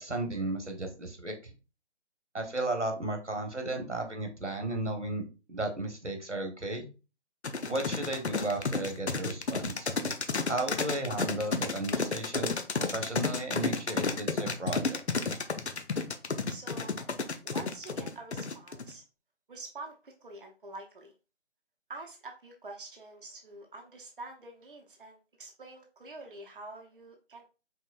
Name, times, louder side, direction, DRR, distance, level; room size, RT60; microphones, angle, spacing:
voice 1, 0.0-1.5 2.3-5.2 5.5-6.9 7.7-9.9 10.5-12.5 12.8-15.0, right 2 dB, 85° right, 4 dB, 1.3 m, -34 dB
sound 1, 7.4-18.9, left 4 dB, 70° left, 0.7 m, -31 dB
voice 2, 16.5-17.1 17.4-19.0 19.5-21.1 21.9-27.4, right 2 dB, 50° right, 1 dB, 0.8 m, -46 dB
4.9 x 3.7 x 2.4 m, 0.32 s
figure-of-eight pair, 155°, 35 cm